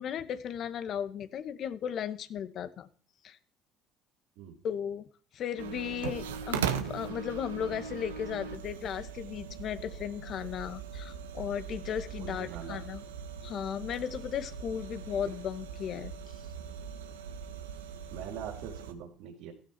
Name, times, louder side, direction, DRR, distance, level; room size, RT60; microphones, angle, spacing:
voice 1, 0.0-2.9 3.2-3.4 4.6-13.0 13.4-16.4, left 9 dB, 55° left, 10 dB, 1.9 m, -36 dB
sound 1, 5.6-18.9, right 7 dB, 80° right, 1.7 m, -39 dB
voice 2, 12.2-12.8 18.1-19.5, right 8 dB, 65° right, -1 dB, 4.9 m, -42 dB
17.0 x 15.5 x 4.6 m, 0.43 s
hypercardioid pair, 60°, 0 cm